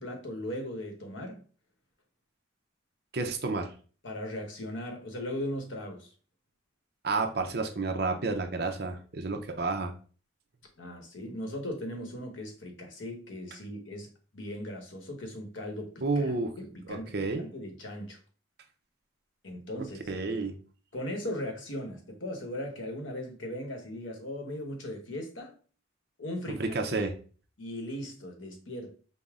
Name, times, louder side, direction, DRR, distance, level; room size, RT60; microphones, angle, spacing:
voice 1, 0.0-1.4 4.0-6.1 10.8-18.2 19.4-20.0 20.9-25.5 26.2-26.7 27.6-28.9, left 1 dB, 80° left, 1.1 m, -38 dB
voice 2, 3.1-3.7 7.0-9.9 16.0-16.5 16.9-17.5 20.1-20.5 26.6-27.1, right 3 dB, 55° right, 0.6 m, -30 dB
5.4 x 2.1 x 3.6 m
head